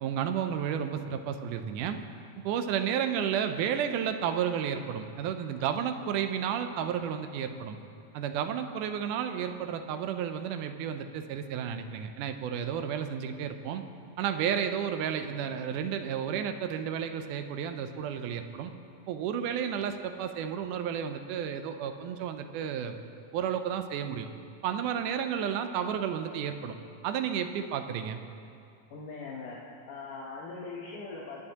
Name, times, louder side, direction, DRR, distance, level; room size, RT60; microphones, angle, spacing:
voice 1, 0.0-2.0 2.4-7.8 8.1-13.8 14.2-18.7 19.1-23.0 23.3-24.3 24.6-26.8 27.0-28.2, right 8 dB, 90° right, 8 dB, 2.2 m, -32 dB
voice 2, 28.9-29.6 29.9-31.5, left 4 dB, 80° left, -3 dB, 2.6 m, -41 dB
25.0 x 10.5 x 2.9 m, 2.6 s
omnidirectional pair, 3.6 m